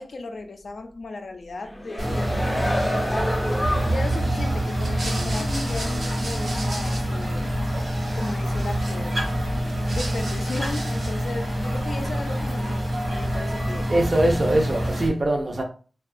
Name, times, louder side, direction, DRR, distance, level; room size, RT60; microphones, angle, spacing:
voice 1, 0.0-3.3 3.8-7.5 8.1-9.3 9.9-13.9, left 3 dB, 65° left, 0.4 m, -35 dB
sound 1, 1.6-4.4 4.8-4.9, equal, 10° left, 0.5 m, -28 dB
sound 2, 2.0-15.1, equal, 60° right, 1.1 m, -26 dB
sound 3, 4.7-7.4 7.6-9.3 9.7-11.3, right 2 dB, 75° right, 0.8 m, -37 dB
voice 2, 13.9-15.6, right 1 dB, 40° right, 0.5 m, -22 dB
2.8 x 2.2 x 2.5 m
wide cardioid pair, 115°, 0 cm